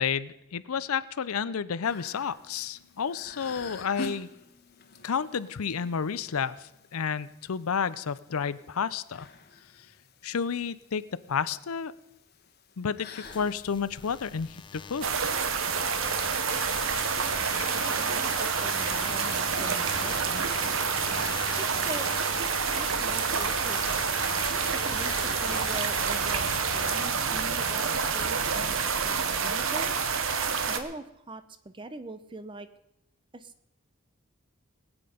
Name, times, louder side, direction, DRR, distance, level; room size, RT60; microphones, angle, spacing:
voice 1, 0.0-4.3 5.0-9.3 10.2-11.9 12.8-15.1, left 6 dB, 80° left, 16 dB, 0.6 m, -31 dB
sound 1, 1.9-20.7, left 3 dB, 45° left, 1.3 m, -48 dB
sound 2, 13.2-27.8, left 4 dB, 20° left, 0.7 m, -42 dB
sound 3, 15.0-30.8, right 6 dB, 65° right, 1.0 m, -28 dB
voice 2, 17.8-20.5 21.6-22.1 22.6-23.9 24.7-30.0 30.7-32.7 33.3-33.5, right 2 dB, 25° right, 12 dB, 0.7 m, -42 dB
20.0 x 8.9 x 5.1 m, 0.85 s
head